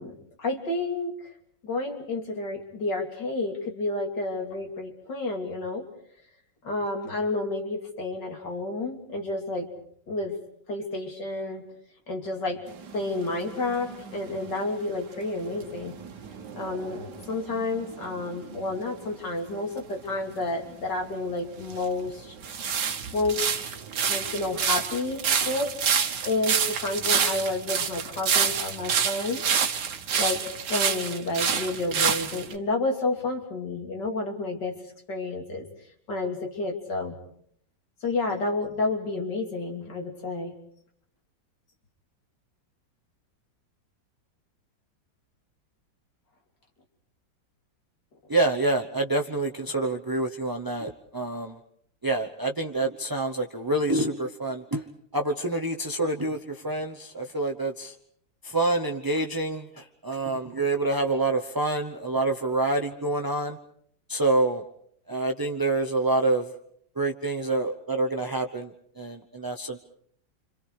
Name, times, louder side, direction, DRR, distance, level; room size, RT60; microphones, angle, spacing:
voice 1, 0.0-1.3 1.6-5.9 6.6-9.7 10.1-10.4 10.7-11.7 12.1-12.7 12.9-16.0 16.6-22.4 23.1-23.8 24.1-25.7 26.2-29.4 30.2-34.8 35.1-35.7 36.1-37.2 38.0-40.6, left 2 dB, 65° left, 3 dB, 3.8 m, -30 dB
sound 1, 12.7-18.8 20.4-20.5 21.3-32.5, right 7 dB, 65° right, 1.8 m, -28 dB
voice 2, 48.3-51.6 52.0-54.9 55.1-57.9 58.4-63.6 64.1-64.6 65.1-66.5 66.9-69.8, right 2 dB, 20° right, 4 dB, 0.6 m, -27 dB
29.5 x 26.5 x 4.9 m, 0.65 s
omnidirectional pair, 2.0 m